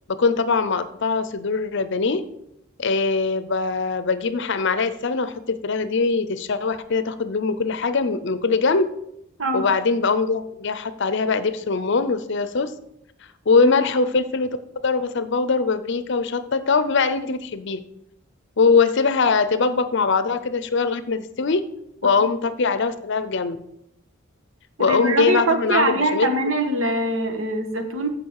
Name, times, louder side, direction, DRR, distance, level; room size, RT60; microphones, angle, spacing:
voice 1, 0.1-2.2 2.8-8.9 9.5-12.7 13.5-14.6 14.8-17.8 18.6-21.6 22.0-23.6 24.8-26.4, left 4 dB, 60° left, 13 dB, 0.7 m, -22 dB
voice 2, 24.8-28.1, right 2 dB, 80° right, 6 dB, 1.5 m, -23 dB
14.5 x 5.2 x 4.8 m, 0.81 s
head